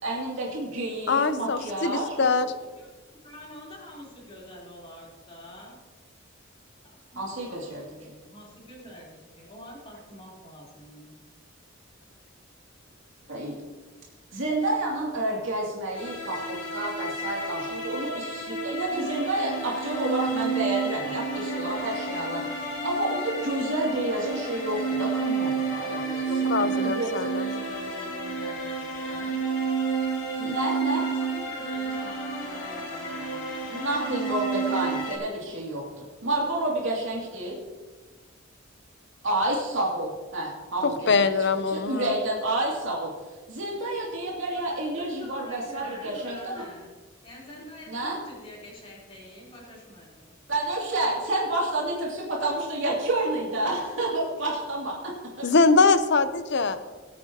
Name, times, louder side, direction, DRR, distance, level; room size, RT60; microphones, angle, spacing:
voice 1, 0.0-2.3 7.2-7.8 13.3-13.5 14.3-26.3 26.6-27.1 30.4-31.0 33.7-37.6 39.2-43.1 43.5-46.6 47.9-48.2 50.5-55.0, right 2 dB, 65° right, -3 dB, 2.6 m, -29 dB
voice 2, 1.1-2.5 26.4-27.5 41.1-42.1 55.4-56.9, left 4 dB, 60° left, 11 dB, 0.7 m, -23 dB
voice 3, 3.2-5.8 6.8-11.2 26.3-29.4 30.9-34.2 45.0-46.9 47.2-50.3, equal, 25° left, -5 dB, 3.8 m, -46 dB
sound 1, 15.9-35.2, right 4 dB, 80° left, 2.5 m, -30 dB
20.5 x 8.5 x 2.9 m, 1.3 s
head